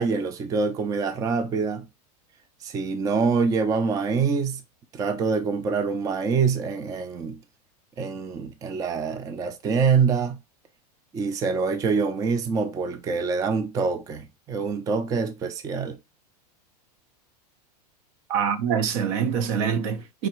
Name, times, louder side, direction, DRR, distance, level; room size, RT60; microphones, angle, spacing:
voice 1, 0.0-1.9 2.6-4.6 4.9-7.4 8.0-10.4 11.1-16.0, right 5 dB, 15° right, 0.4 m, -25 dB
voice 2, 18.3-20.3, right 7 dB, 60° right, 0.7 m, -25 dB
4.8 x 2.9 x 3.0 m
supercardioid pair, 135°, 20 cm